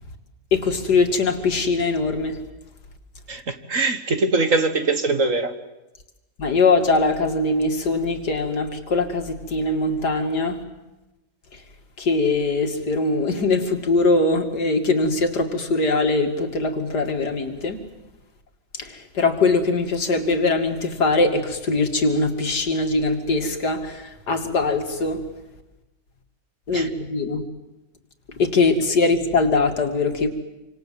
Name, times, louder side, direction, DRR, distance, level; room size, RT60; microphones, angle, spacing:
voice 1, 0.5-2.4 6.4-10.6 12.0-17.8 18.8-25.2 26.7-27.4 28.4-30.3, left 3 dB, 65° left, 3.0 m, -22 dB
voice 2, 3.3-5.6 26.7-26.9, right 3 dB, 50° right, 1.9 m, -22 dB
28.0 x 26.0 x 7.7 m
omnidirectional pair, 1.9 m